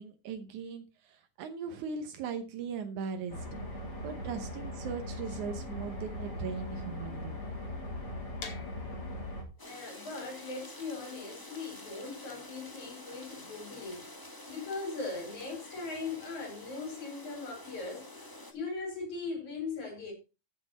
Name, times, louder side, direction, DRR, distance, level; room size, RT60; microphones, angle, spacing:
voice 1, 0.0-3.4 4.0-7.4, right 6 dB, 80° right, 2.4 m, -39 dB
sound 1, 3.3-9.4, left 1 dB, 30° left, 3.9 m, -39 dB
sound 2, 8.4-14.2, left 4 dB, 50° left, 2.9 m, -51 dB
voice 2, 9.6-14.1 14.5-18.1 18.5-20.1, left 4 dB, 70° left, 5.7 m, -39 dB
sound 3, 9.6-18.5, left 1 dB, 15° left, 0.8 m, -48 dB
14.0 x 6.9 x 4.1 m
omnidirectional pair, 3.5 m